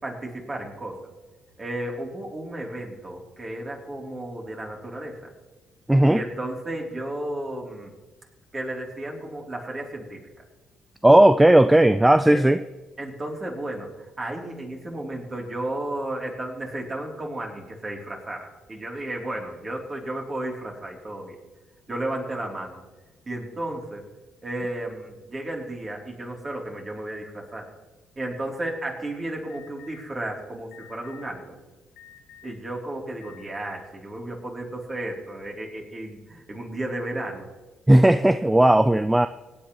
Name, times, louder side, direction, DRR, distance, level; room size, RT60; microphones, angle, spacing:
voice 1, 0.0-1.1 1.6-5.2 6.0-7.9 8.5-10.2 12.3-12.4 13.0-21.4 21.9-22.8 23.3-24.1 24.4-27.7 28.2-31.6 32.4-37.5, right 1 dB, 35° right, -1 dB, 3.6 m, -33 dB
voice 2, 5.9-6.2 11.0-12.6 37.9-39.3, right 1 dB, 10° right, 11 dB, 0.4 m, -16 dB
Alarm, 29.5-30.0 30.7-31.3 32.0-32.6 33.2-33.8, left 10 dB, 75° left, 1.1 m, -49 dB
24.0 x 9.3 x 3.3 m, 1.2 s
hypercardioid pair, 50°, 0 cm